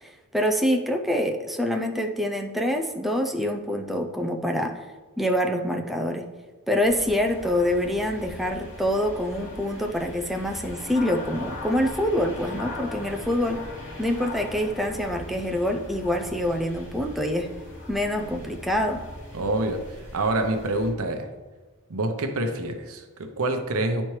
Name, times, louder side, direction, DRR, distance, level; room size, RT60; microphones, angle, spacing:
voice 1, 0.0-4.9 5.2-6.3 6.7-13.6 14.0-17.5 17.9-19.0, left 1 dB, ahead, 2 dB, 0.4 m, -26 dB
sound 1, 6.8-20.9, left 2 dB, 60° left, 2.2 m, -40 dB
voice 2, 19.3-21.3 21.9-24.0, right 2 dB, 70° right, 5 dB, 0.8 m, -27 dB
10.5 x 4.3 x 3.2 m, 1.3 s
head